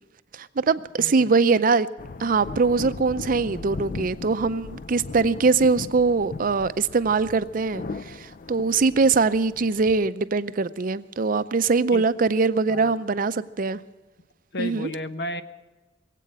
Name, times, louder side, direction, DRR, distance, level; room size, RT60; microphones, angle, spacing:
voice 1, 0.3-1.9 2.2-13.8 14.6-14.9, right 4 dB, 50° right, 14 dB, 0.5 m, -22 dB
voice 2, 1.0-1.3 11.9-12.0 12.7-12.9 14.5-15.4, left 1 dB, 65° left, 11 dB, 0.9 m, -33 dB
sound 1, 2.0-10.1, left 3 dB, 50° left, 0.4 m, -38 dB
21.5 x 8.4 x 7.5 m, 1.2 s
head